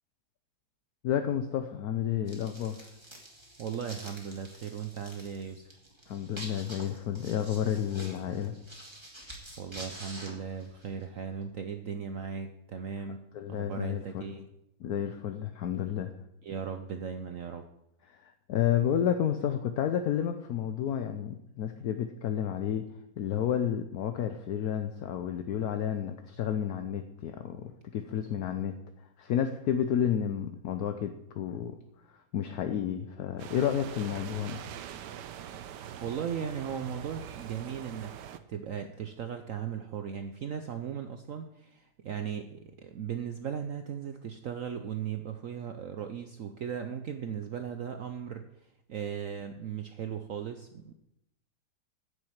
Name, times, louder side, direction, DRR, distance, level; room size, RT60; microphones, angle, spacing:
voice 1, 1.0-2.9 6.1-8.5 13.3-14.5 14.8-16.1 18.1-22.9 23.2-28.7 29.2-31.7 32.3-34.6, left 9 dB, 65° left, 8 dB, 1.0 m, -31 dB
sound 1, 2.3-11.1, right 1 dB, 15° right, 2.4 m, -47 dB
voice 2, 3.6-5.8 9.6-13.2 13.5-14.4 16.4-17.6 35.7-48.5 48.9-50.9, right 7 dB, 90° right, 7 dB, 0.7 m, -37 dB
sound 2, 33.4-38.4, right 9 dB, 70° right, 1.2 m, -43 dB
9.7 x 7.4 x 7.9 m, 0.83 s
omnidirectional pair, 2.3 m